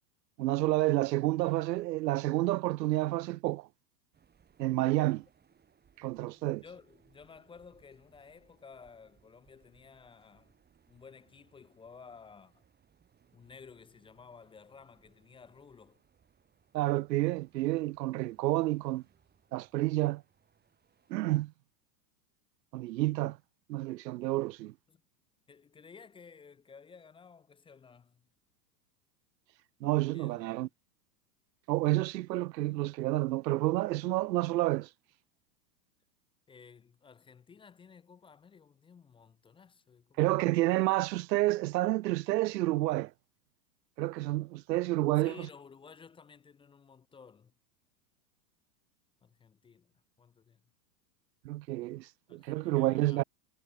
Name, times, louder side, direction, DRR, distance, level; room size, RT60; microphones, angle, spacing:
voice 1, 0.4-3.7 4.6-5.2 6.0-6.6 16.7-19.0 19.5-20.2 21.1-21.5 22.7-23.4 23.7-24.7 29.8-30.7 31.7-34.9 40.2-43.1 44.0-45.5 51.4-53.2, right 18 dB, 80° right, 0.7 m, -29 dB
sound 1, 4.1-21.4, right 7 dB, 20° right, 7.4 m, -68 dB
voice 2, 6.6-10.5 10.9-12.6 13.3-16.0 24.9-25.0 25.5-28.2 30.1-30.7 36.5-40.7 45.2-47.5 49.2-49.9 50.2-50.6 52.3-53.2, left 5 dB, 10° left, 0.6 m, -54 dB
hypercardioid pair, 130°, 50 cm